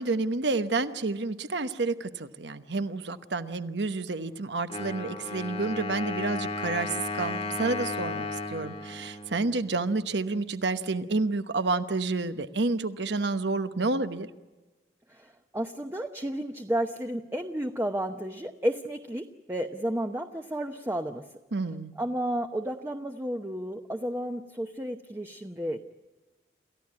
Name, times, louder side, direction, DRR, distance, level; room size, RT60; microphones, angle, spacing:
voice 1, 0.0-14.3 21.5-21.9, right 3 dB, 70° right, 11 dB, 1.0 m, -29 dB
Wind instrument woodwind instrument, 4.7-10.3, left 3 dB, 35° left, 1.5 m, -35 dB
voice 2, 15.1-21.2 22.0-25.9, right 1 dB, 15° right, 5 dB, 0.8 m, -32 dB
28.5 x 15.0 x 9.6 m, 1.2 s
head